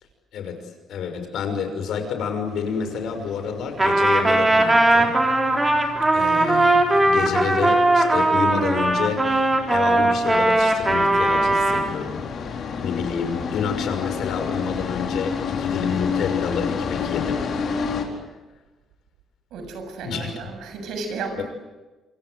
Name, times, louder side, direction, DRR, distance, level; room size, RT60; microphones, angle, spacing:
voice 1, 0.9-5.1 6.1-17.5 20.0-20.3 21.4-21.5, left 6 dB, 70° left, 7 dB, 6.0 m, -28 dB
sound 1, 2.4-18.0, left 6 dB, 55° left, 4.6 m, -31 dB
Trumpet, 3.8-11.9, right 2 dB, 15° right, 3.9 m, -19 dB
voice 2, 19.5-21.4, right 4 dB, 80° right, 6 dB, 7.3 m, -33 dB
28.0 x 25.0 x 7.9 m, 1.1 s
cardioid pair, 130°, 0 cm